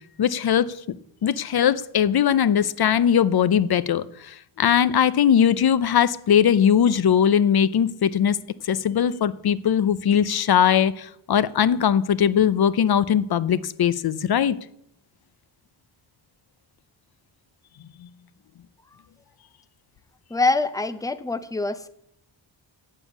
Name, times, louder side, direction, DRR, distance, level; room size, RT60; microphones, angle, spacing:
voice 1, 0.2-0.8 1.2-8.4 8.6-14.6 18.0-18.1, left 8 dB, 55° left, 17 dB, 0.6 m, -20 dB
voice 2, 20.3-21.9, left 3 dB, 10° left, 12 dB, 0.6 m, -24 dB
9.1 x 7.3 x 8.2 m, 0.74 s
wide cardioid pair, 135°, 46 cm